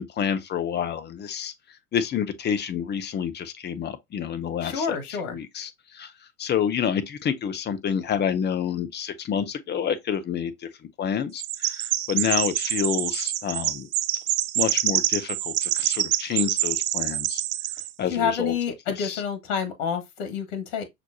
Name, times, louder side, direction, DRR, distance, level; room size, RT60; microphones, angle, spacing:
voice 1, 0.0-1.5 1.9-6.1 6.4-10.7 11.0-13.9 14.5-17.4 18.0-18.5 19.0-19.2, left 8 dB, 25° left, 0.8 m, -28 dB
voice 2, 4.6-5.4 18.1-20.8, left 6 dB, 55° left, 1.7 m, -28 dB
Chirp tweet, 11.4-17.9, right 14 dB, 65° right, 0.5 m, -26 dB
6.0 x 3.0 x 2.7 m
hypercardioid pair, 85°, 44 cm